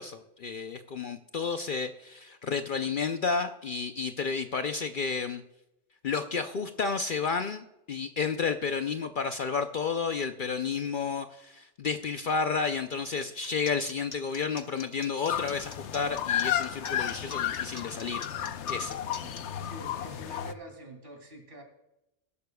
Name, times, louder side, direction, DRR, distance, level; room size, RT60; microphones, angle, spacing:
voice 1, 0.0-5.4 6.0-18.2 18.7-19.0, left 5 dB, 55° left, 7 dB, 0.7 m, -31 dB
sound 1, 13.2-19.4, left 4 dB, 40° left, 1.1 m, -45 dB
sound 2, 15.3-20.5, left 10 dB, 75° left, 1.0 m, -32 dB
voice 2, 19.2-21.6, right 1 dB, 50° right, 2 dB, 3.1 m, -46 dB
21.0 x 11.5 x 2.3 m, 0.90 s
omnidirectional pair, 1.2 m